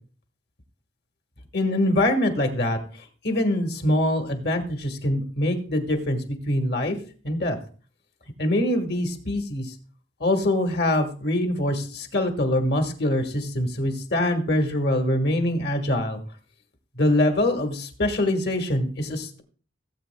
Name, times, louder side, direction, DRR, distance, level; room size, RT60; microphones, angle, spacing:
voice 1, 1.5-7.0 7.2-7.6 8.4-9.7 10.2-16.2 16.9-19.4, left 1 dB, 55° left, 6 dB, 1.5 m, -24 dB
16.5 x 8.2 x 2.2 m, 0.40 s
head